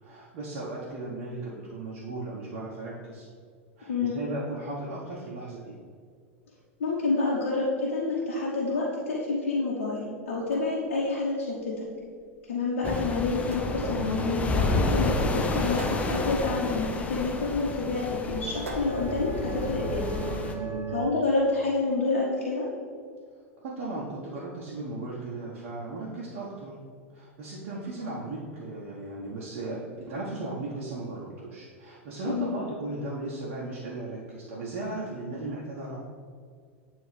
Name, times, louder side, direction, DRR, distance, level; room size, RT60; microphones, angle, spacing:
voice 1, 0.0-3.3 3.8-5.7 20.5-20.8 23.6-26.8 27.1-36.0, right 2 dB, 55° right, -6 dB, 1.1 m, -36 dB
voice 2, 3.9-4.2 6.8-11.9 12.5-15.1 15.5-20.2 20.9-22.7 32.3-32.6, left 3 dB, 75° left, -6 dB, 1.0 m, -28 dB
sound 1, 10.2-20.2, right 1 dB, 85° right, 0.8 m, -46 dB
sound 2, 12.8-20.5, left 2 dB, 20° left, 0.6 m, -30 dB
sound 3, 13.8-16.9 17.9-21.1, right 4 dB, 35° right, 0.7 m, -38 dB
9.0 x 3.1 x 3.3 m, 2.1 s
hypercardioid pair, 90°, 7 cm